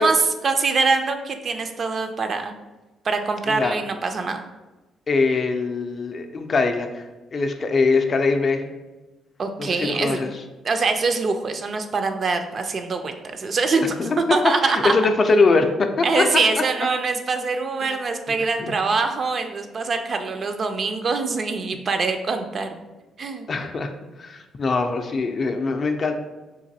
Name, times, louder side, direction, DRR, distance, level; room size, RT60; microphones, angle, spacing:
voice 1, 0.0-2.5 3.0-4.4 9.4-10.2 10.6-13.9 14.3-14.9 16.0-22.8 23.2-23.5, right 4 dB, 45° right, 6 dB, 0.3 m, -24 dB
voice 2, 3.5-3.8 5.1-7.0 7.3-8.7 9.6-10.3 14.0-14.2 14.6-16.3 17.8-18.0 18.6-18.7 23.5-23.9 24.2-26.1, left 3 dB, 40° left, 6 dB, 0.4 m, -22 dB
3.9 x 2.5 x 2.7 m, 1.1 s
cardioid pair, 90°, 0 cm